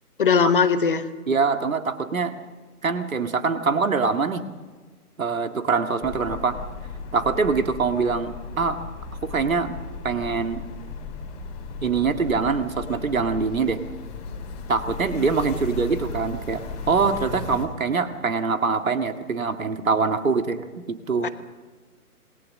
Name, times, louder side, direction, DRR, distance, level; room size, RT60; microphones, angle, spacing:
voice 1, 0.2-1.0 21.2-21.3, left 6 dB, 35° left, 11 dB, 1.1 m, -19 dB
voice 2, 1.3-2.3 2.8-4.4 5.2-6.6 7.1-8.8 9.2-9.7 10.0-10.6 11.8-13.8 14.7-21.3, right 4 dB, 60° right, 7 dB, 2.0 m, -24 dB
sound 1, 6.0-17.6, left 4 dB, 15° left, 2.5 m, -36 dB
27.0 x 20.0 x 6.6 m, 1.4 s
figure-of-eight pair, 140°, 46 cm